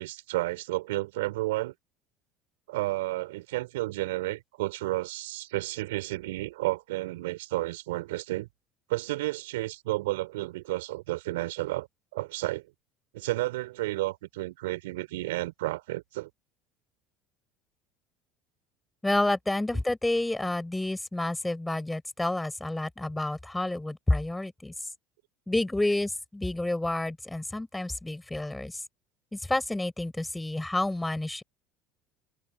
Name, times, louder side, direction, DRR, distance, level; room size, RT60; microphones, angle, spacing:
voice 1, 0.0-1.7 2.7-8.5 8.9-11.9 12.1-12.6 13.1-16.3 19.7-19.8, right 19 dB, 80° right, 5.3 m, -31 dB
voice 2, 19.0-24.7 25.5-28.8 29.3-31.4, left 2 dB, 10° left, 6.8 m, -29 dB
hypercardioid pair, 75°, 0 cm